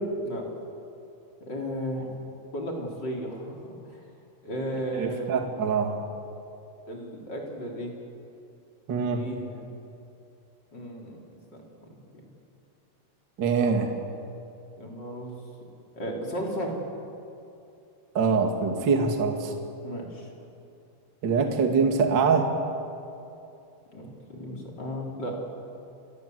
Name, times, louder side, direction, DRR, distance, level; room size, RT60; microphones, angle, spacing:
voice 1, 1.4-2.1 2.5-4.0 4.4-5.3 6.9-7.9 9.2-9.7 10.7-11.2 11.8-11.9 14.8-15.4 16.0-16.8 19.8-20.3 23.9-25.4, equal, 25° left, -1 dB, 3.6 m, -34 dB
voice 2, 4.9-5.9 8.9-9.2 13.4-13.9 18.1-19.5 21.2-22.5, right 5 dB, 45° right, 3 dB, 1.5 m, -24 dB
29.5 x 24.5 x 8.0 m, 2.7 s
omnidirectional pair, 5.9 m